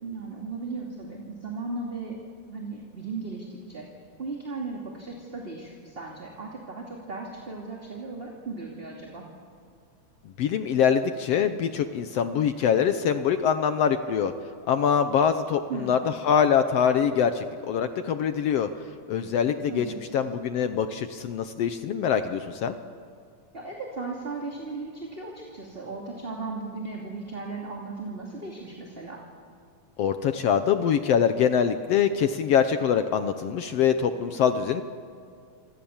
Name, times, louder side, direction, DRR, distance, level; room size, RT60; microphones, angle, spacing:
voice 1, 0.0-2.2 2.5-3.9 4.2-9.2 15.7-16.0 19.7-20.2 23.5-29.2, right 3 dB, 20° right, -1 dB, 2.5 m, -36 dB
voice 2, 10.4-14.3 14.7-16.0 16.2-18.7 19.1-19.9 20.1-22.8 30.0-34.8, left 7 dB, 65° left, 9 dB, 1.7 m, -24 dB
27.0 x 26.0 x 7.3 m, 2.2 s
omnidirectional pair, 3.3 m